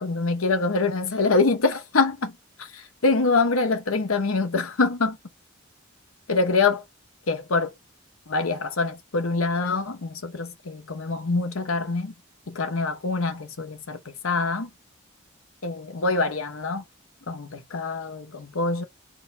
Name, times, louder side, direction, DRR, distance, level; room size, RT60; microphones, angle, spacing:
voice 1, 0.0-2.4 3.0-5.2 6.3-6.8 7.3-7.7 8.3-12.1 12.5-14.7 15.6-16.8 17.3-18.8, left 3 dB, 80° left, 0.9 m, -25 dB
3.9 x 2.3 x 4.1 m
head